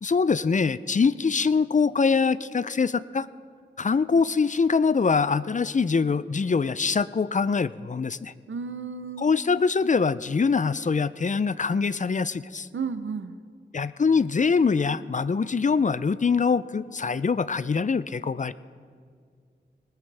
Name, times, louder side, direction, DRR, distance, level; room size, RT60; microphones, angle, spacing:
voice 1, 0.0-3.3 3.8-8.3 9.2-12.7 13.7-18.5, left 5 dB, 40° left, 16 dB, 0.4 m, -23 dB
voice 2, 8.5-9.3 12.7-13.4, right 5 dB, 90° right, 11 dB, 0.7 m, -32 dB
20.0 x 19.5 x 3.4 m, 2.1 s
wide cardioid pair, 45°, 19 cm